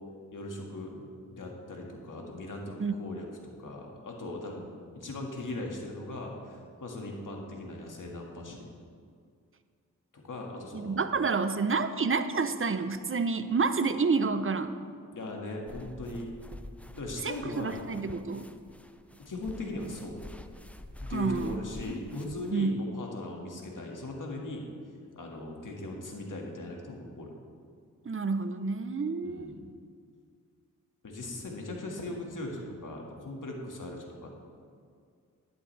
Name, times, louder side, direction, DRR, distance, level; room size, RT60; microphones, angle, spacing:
voice 1, 0.3-4.6 5.0-8.7 10.1-11.1 15.1-16.3 17.0-17.8 19.2-20.2 21.0-24.7 25.2-27.3 29.2-29.5 31.0-34.3, left 2 dB, 65° left, 0 dB, 1.9 m, -39 dB
voice 2, 10.7-14.7 17.2-18.5 21.1-21.6 22.5-22.8 28.0-29.5, right 4 dB, 40° right, 10 dB, 0.7 m, -29 dB
sound 1, 15.7-22.5, left 1 dB, 5° left, 0.6 m, -47 dB
12.0 x 11.0 x 3.3 m, 2.2 s
cardioid pair, 60°, 33 cm